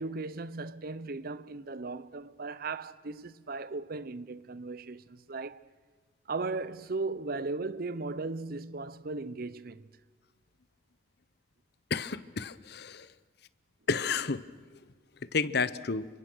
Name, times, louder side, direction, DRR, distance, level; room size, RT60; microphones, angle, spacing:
voice 1, 0.0-5.6 6.3-9.9, right 3 dB, 55° right, 0.7 m, -37 dB
voice 2, 11.9-13.1 13.9-14.4 15.3-16.1, left 5 dB, 60° left, 0.8 m, -31 dB
29.0 x 25.0 x 6.2 m
head